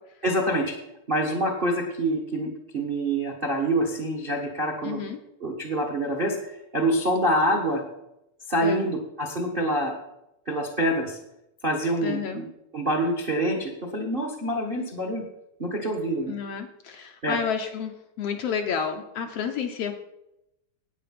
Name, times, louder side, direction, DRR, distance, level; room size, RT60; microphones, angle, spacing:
voice 1, 0.2-0.7 1.1-5.0 5.4-7.8 8.5-9.9 10.5-11.2 11.6-12.5 12.7-15.2 15.6-16.4 17.2-17.4, right 1 dB, 65° right, 3 dB, 0.5 m, -26 dB
voice 2, 4.8-5.2 8.6-8.9 12.0-12.4 16.3-19.9, left 7 dB, 70° left, 5 dB, 1.5 m, -30 dB
10.0 x 8.6 x 5.9 m, 0.87 s
omnidirectional pair, 3.5 m